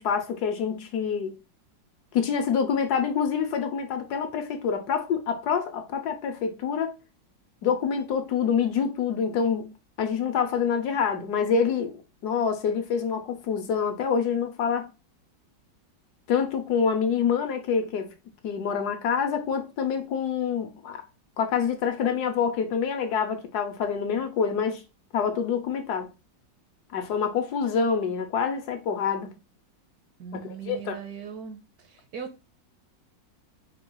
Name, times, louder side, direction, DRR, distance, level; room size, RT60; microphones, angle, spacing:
voice 1, 0.0-1.4 2.1-7.0 7.6-9.7 10.0-12.0 12.2-14.9 16.3-18.1 18.4-21.0 21.4-24.8 25.1-26.1 26.9-29.4 30.3-31.0, left 6 dB, 70° left, 1.1 m, -26 dB
voice 2, 30.2-32.5, right 7 dB, 70° right, 1.0 m, -39 dB
4.6 x 2.3 x 3.7 m
omnidirectional pair, 1.9 m